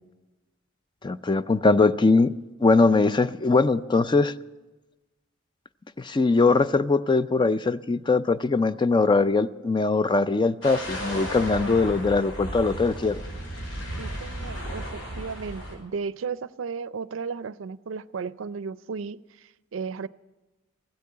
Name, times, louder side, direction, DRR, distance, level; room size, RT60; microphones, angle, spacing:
voice 1, 1.0-2.3 2.6-4.3 6.0-13.2, left 3 dB, 25° left, 0.4 m, -21 dB
sound 1, 10.6-15.7, equal, 85° left, 5.4 m, -34 dB
voice 2, 14.0-20.1, right 5 dB, 75° right, 0.4 m, -35 dB
16.0 x 8.4 x 9.4 m
head